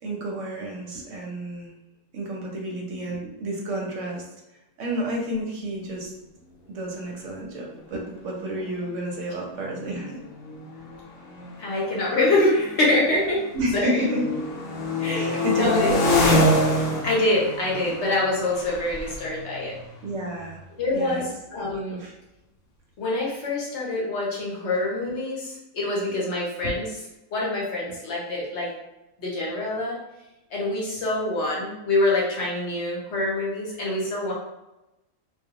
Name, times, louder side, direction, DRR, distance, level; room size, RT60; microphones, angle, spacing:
voice 1, 0.0-1.7 2.1-4.2 4.8-6.1 6.7-10.2 13.5-14.3 15.1-16.0 20.0-20.6 20.9-21.3 21.6-22.1 26.6-26.7, right 1 dB, 70° right, -1 dB, 0.9 m, -30 dB
sound 1, 8.1-8.2 8.5-8.8 9.6-13.5 13.9-20.5, left 1 dB, 85° left, 1.1 m, -26 dB
voice 2, 11.6-13.4 13.8-14.0 15.0-15.3 15.5-15.9 17.0-19.7 20.8-22.0 23.0-26.9 27.3-28.7 29.2-30.0 30.5-34.3, left 2 dB, 60° left, -4 dB, 0.9 m, -25 dB
2.3 x 2.3 x 2.7 m, 0.97 s
omnidirectional pair, 1.4 m